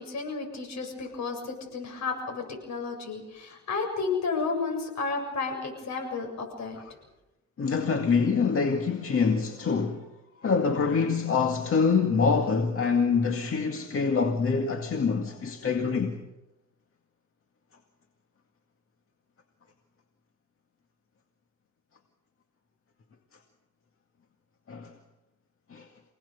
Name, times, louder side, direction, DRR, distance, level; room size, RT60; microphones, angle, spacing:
voice 1, 0.0-6.8, left 4 dB, 65° left, 7.7 m, -32 dB
voice 2, 7.6-10.0 10.4-16.2 24.7-24.9 25.7-25.9, left 5 dB, 45° left, 2.1 m, -25 dB
27.5 x 18.5 x 6.9 m
cardioid pair, 90°, 30 cm